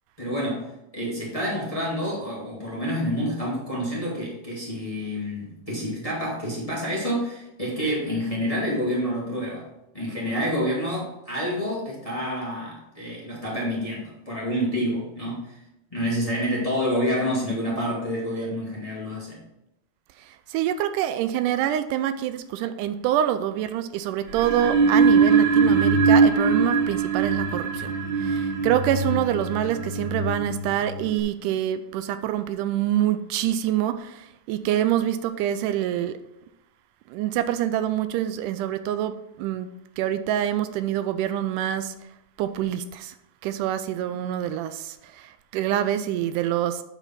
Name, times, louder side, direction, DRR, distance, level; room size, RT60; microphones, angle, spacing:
voice 1, 0.2-9.7 9.9-15.6 15.9-19.4, equal, 15° left, 1.8 m, -28 dB
voice 2, 20.5-27.9 28.2-36.2 37.1-39.7 40.0-41.9 42.4-43.1 43.4-46.8, right 11 dB, 85° right, 2.0 m, -26 dB
sound 1, 24.3-31.2, right 5 dB, 65° right, 1.1 m, -22 dB
8.6 x 5.0 x 5.7 m
omnidirectional pair, 3.7 m